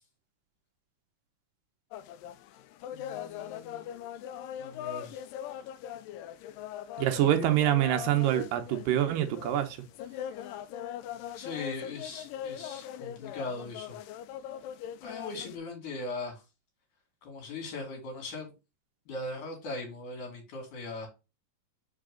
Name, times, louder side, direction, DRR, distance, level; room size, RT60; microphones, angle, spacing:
sound 1, 1.9-15.6, left 10 dB, 85° left, 2.2 m, -41 dB
voice 1, 2.9-3.9 4.6-5.2 7.1-7.5 11.3-14.0 15.0-16.4 17.2-18.5 19.1-21.1, left 3 dB, 70° left, 3.8 m, -39 dB
voice 2, 7.0-9.8, right 12 dB, 80° right, 2.5 m, -26 dB
5.8 x 5.1 x 3.7 m
omnidirectional pair, 3.9 m